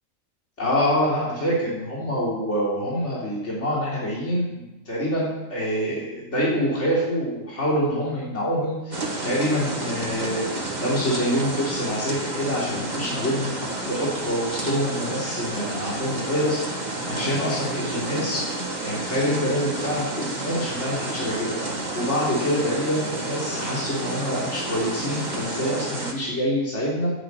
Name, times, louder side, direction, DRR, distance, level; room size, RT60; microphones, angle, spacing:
voice 1, 0.6-13.5 13.8-21.5 21.9-27.1, equal, 60° left, -6 dB, 3.9 m, -26 dB
sound 1, 8.9-26.1, right 2 dB, 35° right, 2.0 m, -30 dB
11.0 x 11.0 x 8.4 m, 1.1 s
omnidirectional pair, 1.3 m